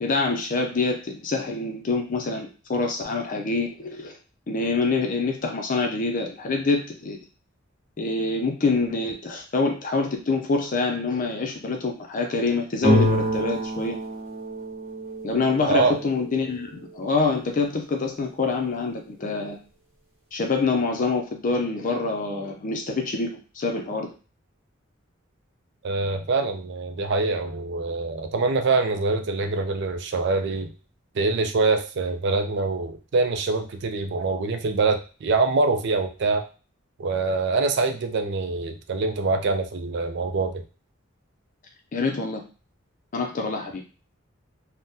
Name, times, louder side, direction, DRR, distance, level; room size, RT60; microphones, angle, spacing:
voice 1, 0.0-4.2 4.5-7.2 8.0-14.0 15.2-19.6 20.3-24.1 41.9-42.4 43.1-43.8, left 3 dB, 40° left, 3 dB, 0.4 m, -26 dB
sound 1, 12.8-16.4, equal, 35° right, 1.2 m, -26 dB
voice 2, 15.7-16.0 25.8-30.7 31.2-36.4 37.0-40.6, right 3 dB, 60° right, 7 dB, 0.4 m, -24 dB
3.5 x 2.1 x 2.7 m, 0.35 s
head